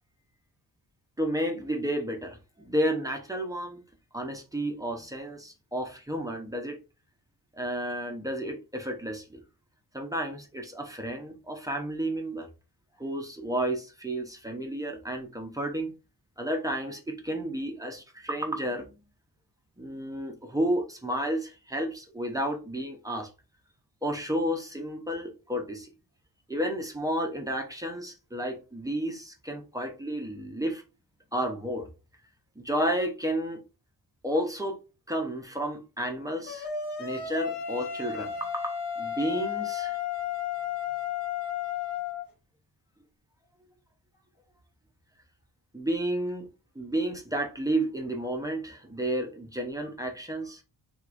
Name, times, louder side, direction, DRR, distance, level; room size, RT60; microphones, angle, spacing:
voice 1, 1.2-3.8 4.1-6.8 7.5-9.4 9.9-12.5 13.0-15.9 16.4-18.9 19.8-23.3 24.0-25.9 26.5-30.8 31.3-31.9 32.6-33.6 34.2-34.8 35.1-36.7 37.0-40.0 45.7-46.5 46.8-50.6, right 1 dB, 10° right, 0.7 m, -31 dB
sound 1, 36.5-42.2, left 8 dB, 85° left, 1.1 m, -33 dB
4.7 x 3.5 x 2.5 m
wide cardioid pair, 155°, 40 cm